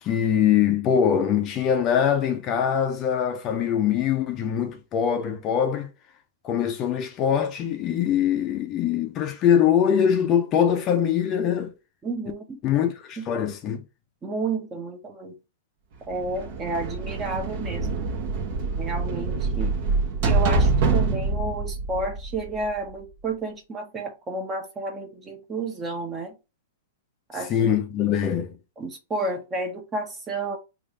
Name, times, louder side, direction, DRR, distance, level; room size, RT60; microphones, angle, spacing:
voice 1, 0.0-5.9 6.4-11.7 12.6-13.8 27.5-28.5, left 8 dB, 30° left, 0.5 m, -23 dB
voice 2, 12.0-12.6 13.2-13.5 14.2-15.3 16.1-18.0 18.8-19.8 20.2-26.3 27.3-27.8 28.8-30.6, right 3 dB, 15° right, 0.8 m, -31 dB
sound 1, 16.1-22.9, right 3 dB, 50° right, 1.1 m, -25 dB
3.1 x 2.5 x 3.9 m
hypercardioid pair, 145°, 0 cm